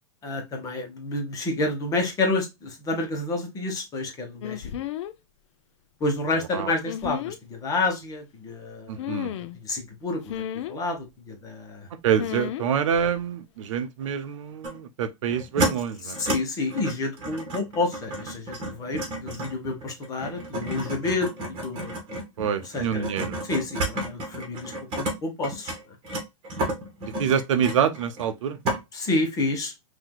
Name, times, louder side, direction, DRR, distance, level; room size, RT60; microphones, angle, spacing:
voice 1, 0.2-4.7 6.0-9.0 9.5-10.4 10.7-11.9 16.2-21.9 22.7-23.0 23.4-25.7 28.9-29.7, left 2 dB, 20° left, 1.3 m, -29 dB
sound 1, 4.4-5.1 6.8-7.4 9.0-9.6 10.3-10.7 12.2-12.7 12.9-13.2, left 11 dB, 60° left, 0.5 m, -32 dB
voice 2, 8.9-9.3 12.0-16.2 22.4-23.4 27.0-28.6, right 8 dB, 65° right, 0.7 m, -26 dB
sound 2, 14.6-14.8 15.3-15.7 16.1-16.4 16.7-25.1 25.4-28.3 28.6-28.8, right 1 dB, 35° right, 2.0 m, -31 dB
5.8 x 2.8 x 2.2 m
hypercardioid pair, 145°, 17 cm